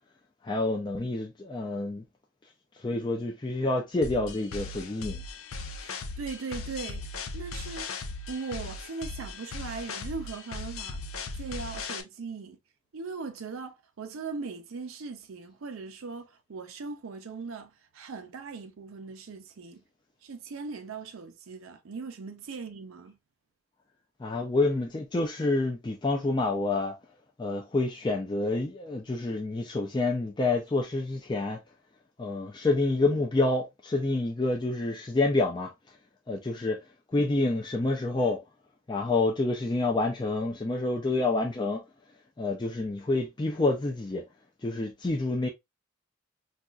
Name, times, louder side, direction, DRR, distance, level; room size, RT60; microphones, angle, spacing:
voice 1, 0.4-2.0 2.8-5.2 24.2-27.0 27.4-31.6 32.2-35.7 36.3-36.8 37.1-38.4 38.9-41.8 42.4-44.2 44.6-45.5, left 2 dB, 20° left, 0.4 m, -28 dB
sound 1, 4.0-12.0, left 3 dB, 90° left, 0.5 m, -38 dB
voice 2, 5.8-7.8 8.3-11.0 11.4-12.6 12.9-19.8 20.2-23.2, right 4 dB, 80° right, 0.5 m, -39 dB
4.0 x 2.3 x 2.3 m
head